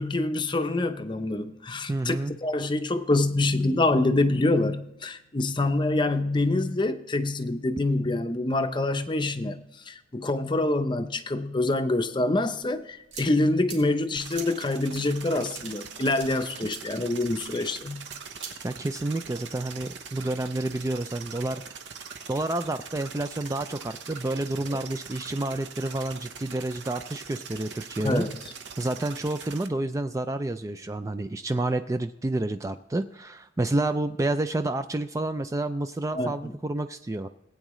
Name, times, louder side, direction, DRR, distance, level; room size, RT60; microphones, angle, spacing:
voice 1, 0.0-2.2 2.4-18.1 24.7-24.8 28.0-28.3 36.1-36.5, left 2 dB, 25° left, 0.6 m, -26 dB
voice 2, 1.9-2.3 18.6-21.8 22.3-28.3 28.8-37.3, right 2 dB, 15° right, 0.3 m, -29 dB
sound 1, 12.6-18.5, right 6 dB, 85° right, 2.5 m, -45 dB
sound 2, 14.2-29.7, right 6 dB, 70° right, 1.0 m, -42 dB
19.5 x 9.0 x 3.1 m
head